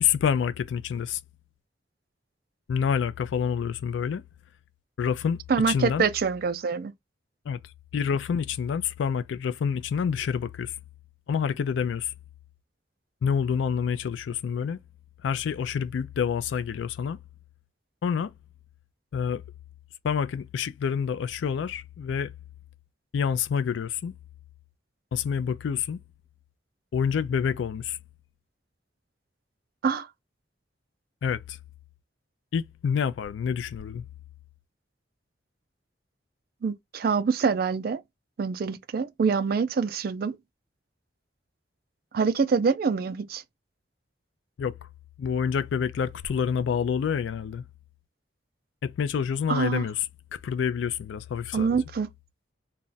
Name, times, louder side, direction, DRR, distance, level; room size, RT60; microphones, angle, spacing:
voice 1, 0.0-1.2 2.7-4.2 5.0-5.4 5.7-6.1 7.5-7.6 7.9-10.7 11.3-12.1 13.2-14.8 15.2-17.2 18.0-18.3 19.1-19.4 20.0-22.3 23.1-24.2 25.1-26.0 26.9-28.0 31.2-31.6 32.5-34.0 44.6-44.8 45.2-47.6 48.8-50.1 50.3-51.8, left 7 dB, 85° left, 0.3 m, -27 dB
voice 2, 5.5-6.9 29.8-30.1 36.6-38.0 38.4-40.4 42.1-43.4 49.5-49.8 51.5-52.1, right 5 dB, 55° right, 0.4 m, -25 dB
2.3 x 2.1 x 3.8 m
head